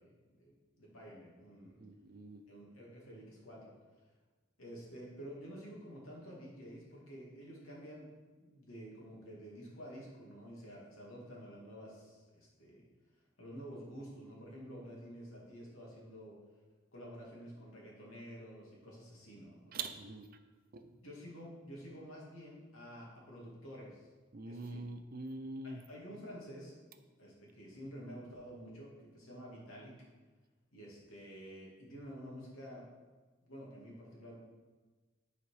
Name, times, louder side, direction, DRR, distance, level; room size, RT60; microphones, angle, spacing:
voice 1, 0.0-1.8 2.5-3.7 4.6-8.1 8.4-12.9 13.4-16.4 16.9-19.8 20.8-24.1 24.4-24.8 25.6-26.7 27.2-30.0 30.7-32.9 33.4-34.4, equal, 80° left, -4 dB, 2.6 m, -50 dB
voice 2, 1.8-2.4 19.7-20.3 20.7-20.8 24.3-25.8, right 3 dB, 45° right, 8 dB, 0.6 m, -43 dB
9.9 x 5.0 x 4.9 m, 1.3 s
head